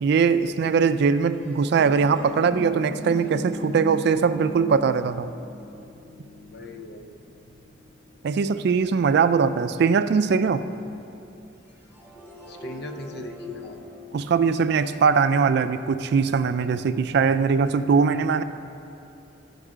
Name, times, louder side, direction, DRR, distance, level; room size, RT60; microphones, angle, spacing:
voice 1, 0.0-5.3 8.2-10.7 14.1-18.4, right 5 dB, 55° right, 12 dB, 0.3 m, -21 dB
sound 1, 1.0-8.5 11.7-15.8, left 1 dB, 10° left, 1.1 m, -40 dB
voice 2, 6.5-7.2 12.5-13.8, left 1 dB, 60° left, 5 dB, 0.6 m, -39 dB
13.5 x 5.4 x 4.9 m, 2.7 s
head